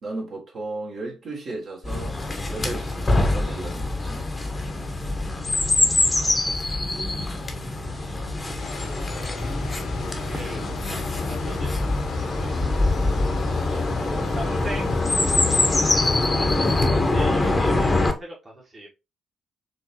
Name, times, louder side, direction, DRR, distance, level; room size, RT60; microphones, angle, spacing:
voice 1, 0.0-2.2 2.5-4.3 7.8-8.0 13.0-13.3, right 2 dB, 50° right, 1.8 m, -35 dB
Chirp tweet, 1.8-18.1, left 2 dB, 25° left, 1.1 m, -24 dB
voice 2, 6.4-7.1 7.4-7.6 8.5-9.5 10.2-11.0 11.3-12.6 13.7-13.9 14.3-14.9 16.4-18.9, right 1 dB, 30° right, 1.6 m, -41 dB
sound 1, 8.6-16.9, left 6 dB, 55° left, 0.7 m, -39 dB
5.0 x 3.1 x 2.9 m
figure-of-eight pair, 40°, 0 cm